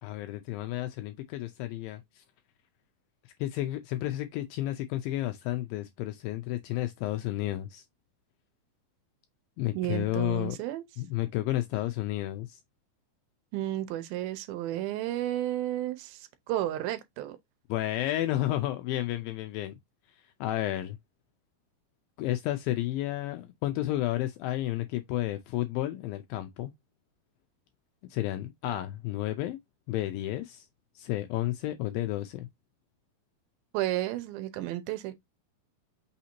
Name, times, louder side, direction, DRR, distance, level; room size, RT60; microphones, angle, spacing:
voice 1, 0.0-2.2 3.4-7.8 9.6-10.6 11.0-12.6 17.7-19.8 20.4-21.0 22.2-26.7 28.1-29.6 29.9-30.7 31.0-32.5, left 14 dB, 80° left, 2.1 m, -31 dB
voice 2, 9.7-10.8 13.5-17.4 33.7-35.1, right 13 dB, 80° right, 2.4 m, -32 dB
5.7 x 2.6 x 2.8 m
omnidirectional pair, 4.4 m